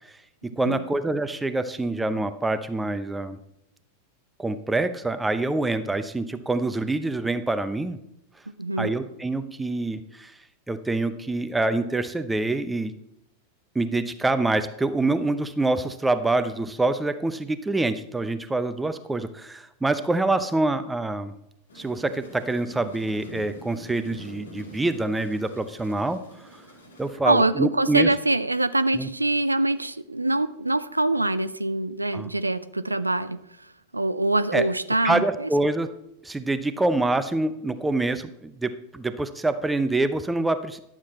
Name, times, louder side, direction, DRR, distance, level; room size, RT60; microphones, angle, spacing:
voice 1, 0.6-3.4 4.4-8.0 8.8-10.3 10.7-12.9 13.7-21.3 21.8-26.2 27.0-28.1 28.9-29.1 32.1-32.3 34.5-34.7 35.0-35.9 36.2-40.8, right 2 dB, 10° right, 11 dB, 0.7 m, -26 dB
voice 2, 8.6-8.9 27.2-33.4 33.9-35.5, right 2 dB, 85° right, 13 dB, 0.4 m, -24 dB
sound 1, 21.7-27.1, right 1 dB, 70° left, 2.1 m, -45 dB
11.5 x 7.4 x 4.3 m, 0.81 s
figure-of-eight pair, 90°, 0 cm